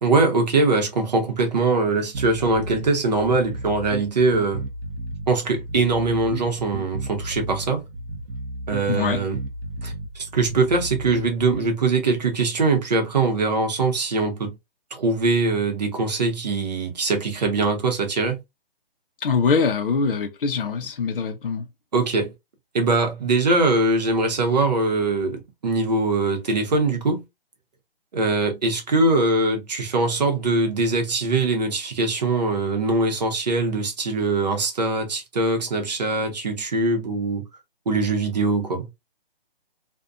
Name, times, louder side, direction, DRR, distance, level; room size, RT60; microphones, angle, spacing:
voice 1, 0.0-4.6 5.3-7.8 8.7-9.4 9.8-14.5 14.9-18.4 21.9-22.3 22.7-27.2 28.1-37.4 37.9-38.9, right 3 dB, 45° right, 0.8 m, -22 dB
sound 1, 2.1-11.7, right 2 dB, 85° right, 0.7 m, -34 dB
voice 2, 8.9-9.2 19.2-21.7, left 5 dB, 65° left, 0.6 m, -23 dB
2.6 x 2.2 x 2.3 m
hypercardioid pair, 165°, 30 cm